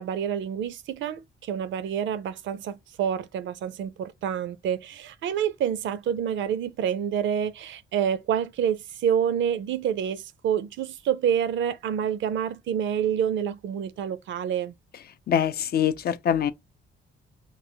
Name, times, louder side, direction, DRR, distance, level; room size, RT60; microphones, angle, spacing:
voice 1, 0.0-14.7, right 8 dB, 70° right, 0.5 m, -28 dB
voice 2, 15.3-16.5, left 9 dB, 50° left, 0.4 m, -24 dB
4.5 x 2.0 x 2.7 m
cardioid pair, 90°, 20 cm